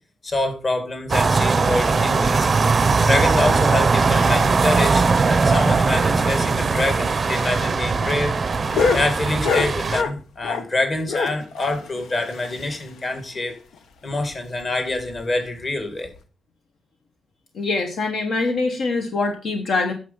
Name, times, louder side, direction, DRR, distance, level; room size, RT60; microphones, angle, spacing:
voice 1, 0.2-2.5 3.0-8.6 8.9-13.5 14.0-16.1, left 2 dB, 30° left, 6 dB, 2.1 m, -26 dB
sound 1, 1.1-10.0, right 4 dB, 30° right, 0.6 m, -19 dB
sound 2, 7.3-10.8 11.1-13.1 13.4-13.5 13.7-13.8 14.2-14.3 14.9-15.2 16.0-16.2, left 5 dB, 80° left, 1.2 m, -26 dB
voice 2, 17.5-19.9, left 3 dB, 60° left, 5 dB, 1.2 m, -23 dB
9.4 x 6.7 x 5.5 m, 0.36 s
wide cardioid pair, 165°, 0 cm